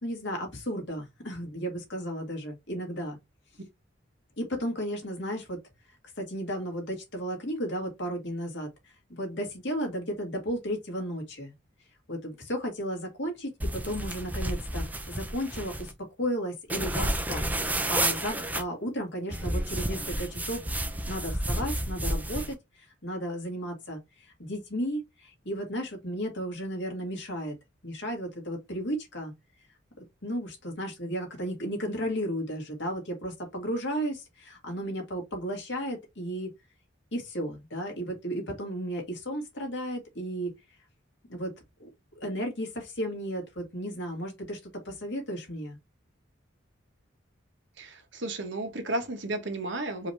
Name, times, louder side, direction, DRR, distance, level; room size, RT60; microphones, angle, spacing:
voice 1, 0.0-3.2 4.4-5.6 6.2-8.7 9.1-11.5 12.1-15.9 16.2-17.5 17.9-20.6 21.1-22.6 23.0-24.0 24.4-27.6 27.8-29.3 30.2-36.5 37.1-40.5 41.3-41.5 41.8-41.9 42.2-44.6 44.9-45.8, equal, 65° left, 2.1 m, -34 dB
sound 1, 13.6-15.9 16.7-18.6 19.3-22.5, right 1 dB, 10° right, 0.5 m, -31 dB
voice 2, 47.8-50.1, right 1 dB, 65° right, 1.2 m, -33 dB
4.8 x 2.8 x 3.3 m
head